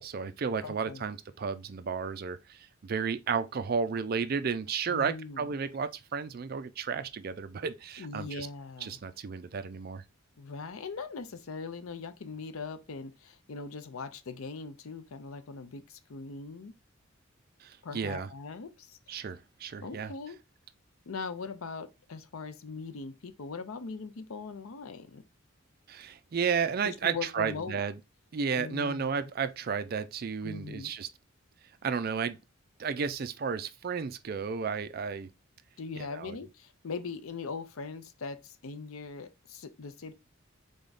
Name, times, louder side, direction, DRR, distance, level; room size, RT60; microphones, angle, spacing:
voice 1, 0.0-8.5 8.8-10.0 17.6-18.3 19.1-20.1 25.9-27.9 28.3-31.1 31.8-32.4 32.8-35.3 36.1-36.4, right 6 dB, 45° right, 0.4 m, -33 dB
voice 2, 0.6-1.0 4.9-5.5 8.0-9.0 10.4-16.7 17.8-19.3 19.8-20.4 21.1-25.2 26.8-27.8 28.6-29.3 30.4-30.9 35.8-40.1, left 4 dB, 80° left, 0.6 m, -41 dB
3.7 x 3.5 x 3.9 m
head